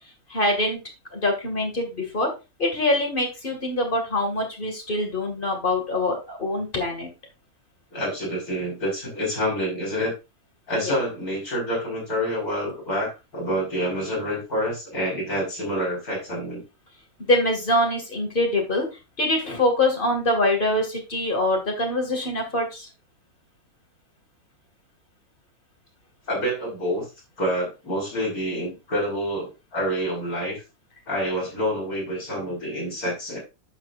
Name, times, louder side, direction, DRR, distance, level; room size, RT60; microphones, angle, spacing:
voice 1, 0.3-0.8 1.1-2.3 2.6-7.1 10.8-10.9 17.2-18.9 19.2-22.9, left 1 dB, 35° left, 2 dB, 2.3 m, -24 dB
voice 2, 7.9-10.1 10.7-16.6 26.3-27.1 27.4-30.6 31.1-33.4, equal, 90° left, -3 dB, 5.5 m, -27 dB
11.0 x 6.0 x 2.5 m, 0.27 s
omnidirectional pair, 1.5 m